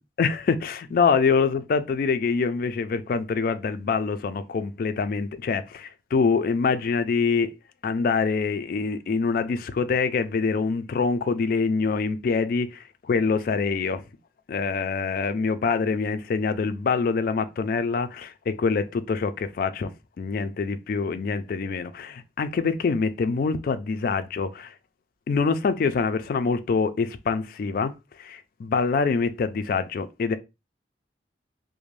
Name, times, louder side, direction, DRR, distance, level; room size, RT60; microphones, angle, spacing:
voice 1, 0.2-7.5 7.8-12.7 13.1-14.0 14.5-19.9 20.2-24.7 25.3-27.9 28.2-30.4, left 5 dB, 50° left, 0.3 m, -25 dB
2.5 x 2.1 x 3.1 m
head